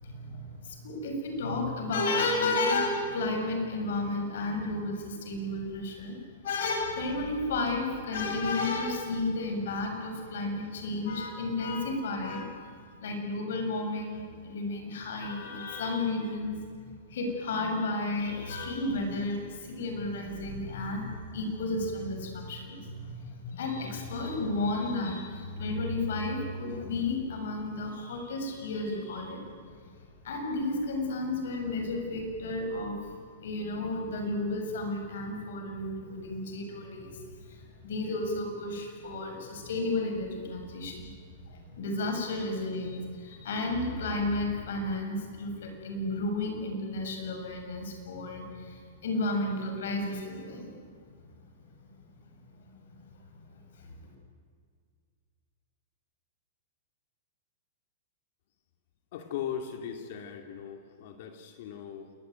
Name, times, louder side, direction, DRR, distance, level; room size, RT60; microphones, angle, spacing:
voice 1, 0.0-12.6 13.0-16.5 17.1-29.4 30.2-33.1 33.4-41.1 41.5-50.7 53.8-53.9, left 2 dB, 75° left, 4 dB, 7.0 m, -32 dB
voice 2, 59.1-62.1, left 8 dB, 55° left, 5 dB, 2.5 m, -38 dB
28.0 x 20.5 x 9.3 m, 2.1 s
hypercardioid pair, 145°, 0 cm